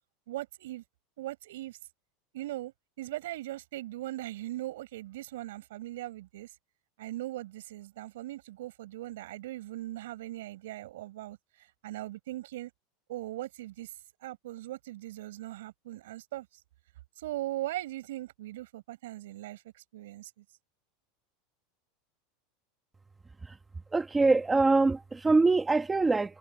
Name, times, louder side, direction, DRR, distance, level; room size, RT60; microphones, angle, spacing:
voice 1, 0.3-0.8 1.2-1.8 2.3-6.5 7.0-12.7 13.1-13.9 14.2-16.5 17.2-20.4, right 15 dB, 90° right, 5.6 m, -39 dB
voice 2, 23.9-26.4, right 3 dB, 10° right, 1.6 m, -24 dB
supercardioid pair, 180°, 0 cm